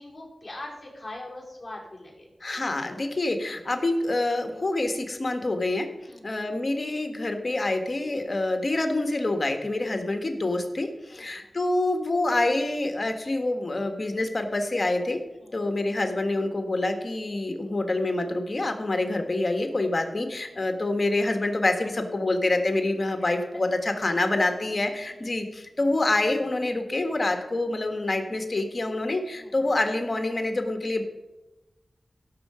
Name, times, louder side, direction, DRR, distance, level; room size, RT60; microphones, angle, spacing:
voice 1, 0.0-2.3 6.0-6.3 11.1-11.5 15.4-15.5 29.3-29.5, left 1 dB, 20° left, -4 dB, 4.7 m, -42 dB
voice 2, 2.4-5.9 6.2-15.2 15.5-31.0, left 2 dB, 40° left, 6 dB, 1.5 m, -26 dB
16.0 x 6.7 x 4.9 m, 1.0 s
wide cardioid pair, 90°, 0 cm